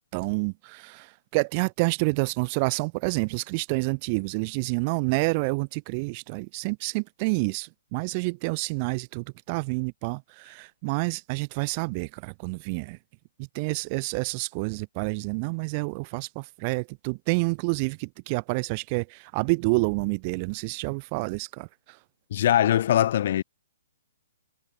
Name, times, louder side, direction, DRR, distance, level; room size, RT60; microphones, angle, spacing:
voice 1, 0.1-13.0 13.4-21.7, right 30 dB, 35° right, 0.3 m, -28 dB
voice 2, 22.3-23.4, left 11 dB, 50° left, 1.1 m, -21 dB
figure-of-eight pair, 125°, 0 cm